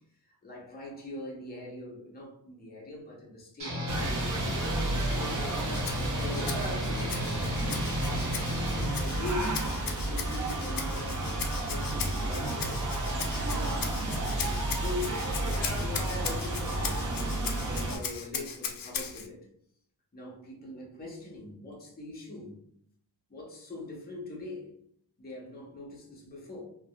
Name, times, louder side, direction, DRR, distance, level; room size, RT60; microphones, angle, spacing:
voice 1, 0.2-4.2 4.6-5.5 5.9-9.6 10.0-12.7 13.4-19.5 20.1-22.6 23.3-24.7 25.2-26.6, left 2 dB, 25° left, 0.7 m, -42 dB
sound 1, 3.6-8.9, equal, 85° right, 1.0 m, -34 dB
sound 2, 3.9-18.0, right 1 dB, 50° right, 0.6 m, -32 dB
Rattle (instrument), 5.4-19.3, left 6 dB, 60° left, 0.5 m, -39 dB
3.4 x 2.0 x 2.2 m
wide cardioid pair, 160°, 39 cm